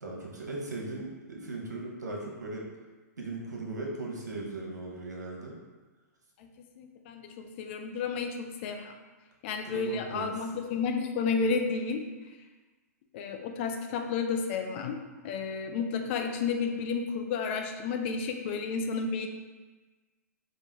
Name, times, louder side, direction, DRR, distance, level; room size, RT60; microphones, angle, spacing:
voice 1, 0.0-2.7 3.2-5.5 9.6-10.5, right 2 dB, 85° right, -2 dB, 1.0 m, -38 dB
voice 2, 6.8-7.3 7.6-8.9 9.4-12.0 13.1-15.0 15.2-19.3, left 5 dB, 45° left, 4 dB, 0.5 m, -31 dB
4.4 x 2.5 x 3.4 m, 1.3 s
hypercardioid pair, 120°, 9 cm